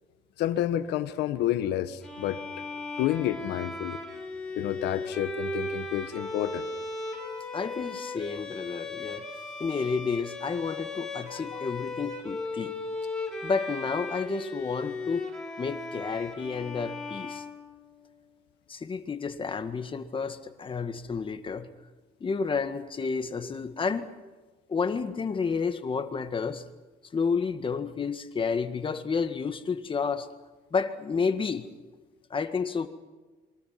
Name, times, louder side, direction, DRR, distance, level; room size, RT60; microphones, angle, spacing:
voice 1, 0.4-2.6 3.0-4.0 4.6-6.7 11.3-11.6, left 12 dB, 80° left, 11 dB, 1.4 m, -30 dB
Bowed string instrument, 2.0-18.1, left 2 dB, 5° left, 5.8 m, -37 dB
voice 2, 7.5-9.3 9.6-12.8 13.4-15.3 15.6-17.4 18.7-21.7 22.2-24.1 24.7-26.6 27.1-30.3 30.7-31.7 32.3-32.9, left 5 dB, 30° left, 8 dB, 1.8 m, -30 dB
28.0 x 23.5 x 5.9 m, 1.3 s
cardioid pair, 110°, 17 cm